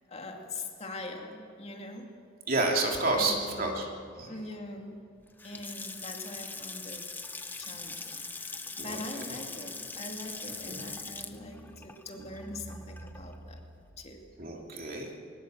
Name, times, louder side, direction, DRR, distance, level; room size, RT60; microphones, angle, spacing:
voice 1, 0.1-2.1 3.1-3.8 4.3-5.0 5.4-7.1 7.6-13.7 14.0-14.2, left 2 dB, 30° left, 2 dB, 2.4 m, -42 dB
voice 2, 2.5-3.9 4.2-4.3 8.8-9.0 10.7-10.8 14.4-15.2, right 2 dB, 45° right, 0 dB, 3.1 m, -29 dB
Water tap faucet / Sink (filling or washing) / Splash splatter, 5.3-13.4, left 3 dB, 10° left, 0.9 m, -41 dB
21.5 x 19.5 x 7.8 m, 2.3 s
head